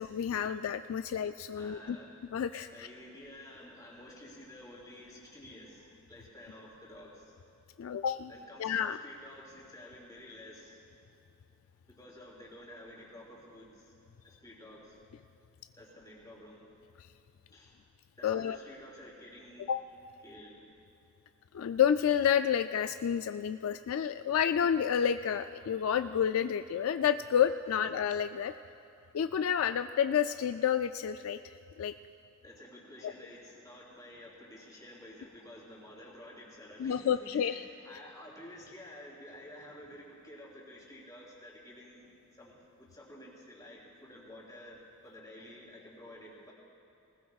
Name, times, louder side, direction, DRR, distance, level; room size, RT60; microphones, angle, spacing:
voice 1, 0.0-2.0 2.3-2.9 7.8-8.3 8.6-9.0 18.2-18.6 19.7-19.8 21.5-28.5 29.1-31.5 31.8-31.9 33.0-33.1 36.8-37.6, left 8 dB, 70° left, 9 dB, 0.3 m, -29 dB
voice 2, 1.5-2.2 2.7-7.4 8.3-10.9 11.9-13.9 14.2-15.0 15.8-16.7 17.5-17.8 18.2-19.7 20.2-20.7 32.4-46.5, left 1 dB, 20° left, -4 dB, 3.1 m, -51 dB
20.0 x 19.5 x 2.4 m, 2.8 s
head